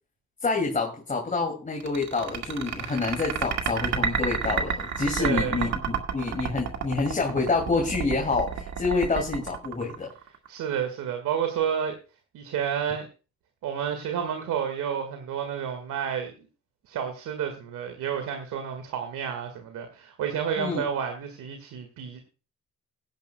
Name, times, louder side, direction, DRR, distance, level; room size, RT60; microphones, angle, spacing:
voice 1, 0.4-10.1 20.6-20.8, left 3 dB, 25° left, 1 dB, 2.6 m, -27 dB
sound 1, 1.8-10.5, right 7 dB, 65° right, 1.9 m, -29 dB
voice 2, 5.2-5.7 10.5-12.0 12.3-13.1 13.6-16.3 16.9-22.3, right 8 dB, 80° right, 6 dB, 1.9 m, -30 dB
17.0 x 10.5 x 2.3 m, 0.33 s
cardioid pair, 90°, 30 cm